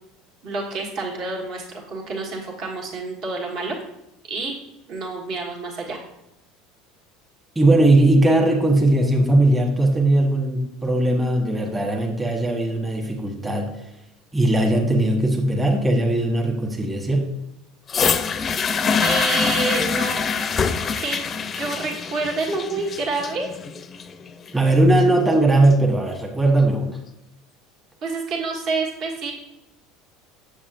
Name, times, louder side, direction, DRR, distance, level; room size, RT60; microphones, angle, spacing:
voice 1, 0.4-3.8 4.3-4.5 4.9-6.0 18.9-20.2 21.0-21.2 21.6-23.5 28.0-29.3, right 3 dB, 55° right, -1 dB, 1.5 m, -28 dB
voice 2, 7.5-13.7 14.3-17.3 24.5-27.0, right 1 dB, 10° right, 0 dB, 1.2 m, -19 dB
sound 1, 17.9-25.9 26.7-26.8, left 6 dB, 30° left, 0.5 m, -25 dB
7.2 x 6.9 x 2.5 m, 0.87 s
supercardioid pair, 100°, 0 cm